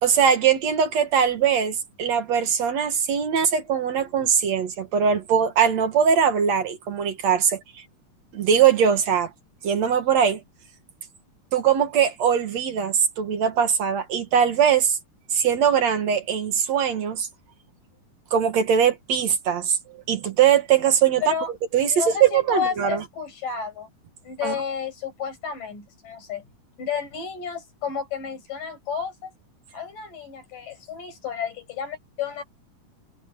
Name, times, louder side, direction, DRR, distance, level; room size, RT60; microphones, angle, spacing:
voice 1, 0.0-7.6 8.3-9.3 9.6-10.4 11.5-15.0 15.3-17.3 18.3-19.8 20.1-21.2 21.7-23.0 24.4-24.5, right 8 dB, 55° right, 2.5 m, -21 dB
voice 2, 21.2-21.5 21.9-23.9 24.2-26.4 26.8-29.3 29.7-32.4, left 7 dB, 60° left, 8.5 m, -31 dB
omnidirectional pair, 4.3 m